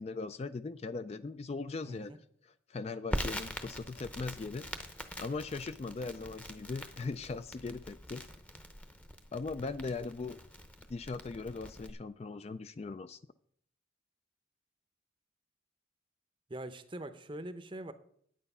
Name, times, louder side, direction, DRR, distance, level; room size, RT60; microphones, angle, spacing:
voice 1, 0.0-2.2 2.7-4.7 5.2-8.2 9.3-10.4 10.9-13.2, left 3 dB, 30° left, 12 dB, 0.3 m, -39 dB
voice 2, 1.9-2.2 16.5-17.9, right 1 dB, 25° right, 11 dB, 0.7 m, -43 dB
Crackle, 3.1-11.9, equal, 5° left, 0.7 m, -43 dB
9.2 x 9.2 x 5.5 m, 0.65 s
head